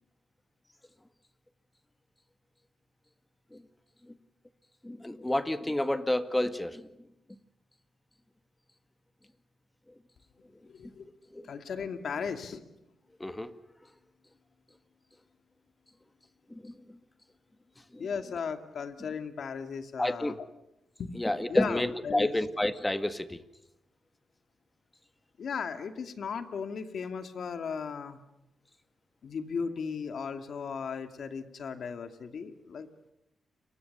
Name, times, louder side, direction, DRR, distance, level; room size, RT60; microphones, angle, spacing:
voice 1, 4.8-6.9 11.3-11.5 13.2-13.5 16.5-16.7 17.9-18.1 20.0-20.3 21.2-23.4, left 1 dB, 15° left, 10 dB, 1.7 m, -30 dB
voice 2, 10.7-11.0 11.4-12.6 18.0-20.3 21.0-21.1 21.5-22.3 25.4-28.2 29.2-33.1, left 6 dB, 70° left, 8 dB, 2.4 m, -36 dB
29.5 x 24.0 x 6.9 m, 0.86 s
cardioid pair, 75°, 0 cm